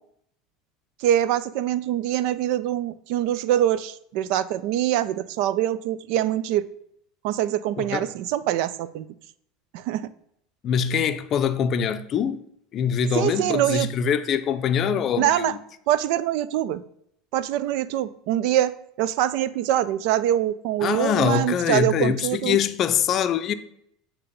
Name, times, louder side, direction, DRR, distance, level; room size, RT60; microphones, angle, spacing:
voice 1, 1.0-6.7 7.2-9.1 9.7-10.1 13.1-13.9 15.2-15.6 15.9-16.8 17.3-22.6, right 12 dB, 65° right, 0.3 m, -24 dB
voice 2, 7.8-8.1 10.6-12.4 12.7-15.6 20.8-23.5, left 7 dB, 45° left, 0.5 m, -24 dB
8.4 x 2.9 x 5.2 m
supercardioid pair, 110°, 0 cm